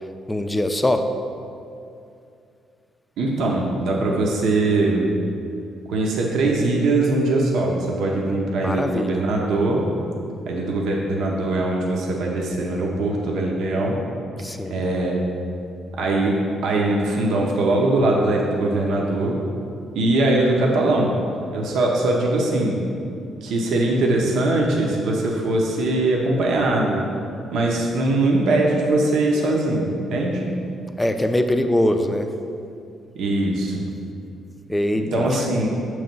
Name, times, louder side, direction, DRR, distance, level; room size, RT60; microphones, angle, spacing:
voice 1, 0.3-1.0 8.5-9.2 14.4-14.8 31.0-32.3 34.7-35.5, left 1 dB, 10° left, 6 dB, 0.4 m, -22 dB
voice 2, 3.2-5.1 5.9-9.9 10.4-14.0 14.7-15.2 15.9-19.4 19.9-21.2 21.5-22.8 23.4-27.1 27.5-30.4 33.1-33.9 35.0-35.7, right 2 dB, 75° right, -1 dB, 0.8 m, -21 dB
6.8 x 3.2 x 5.3 m, 2.5 s
cardioid pair, 85°, 0 cm